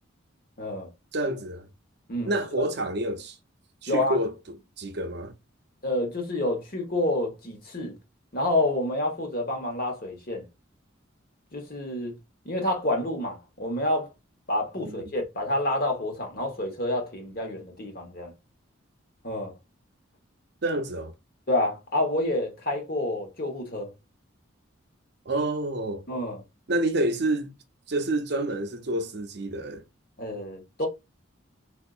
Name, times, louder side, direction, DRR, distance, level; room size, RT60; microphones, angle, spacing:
voice 1, 0.6-0.9 2.1-2.7 3.9-4.2 5.8-8.0 8.3-10.5 11.5-12.1 12.4-14.1 14.5-18.3 19.2-19.5 21.5-23.9 26.1-26.4 30.2-30.9, left 1 dB, 45° left, 1.1 m, -28 dB
voice 2, 1.1-1.7 2.3-3.4 3.8-4.3 4.8-5.3 14.8-15.1 20.6-21.1 25.3-26.0 26.7-27.5 27.9-29.8, right 1 dB, 55° right, 0.6 m, -28 dB
3.7 x 2.7 x 2.4 m
head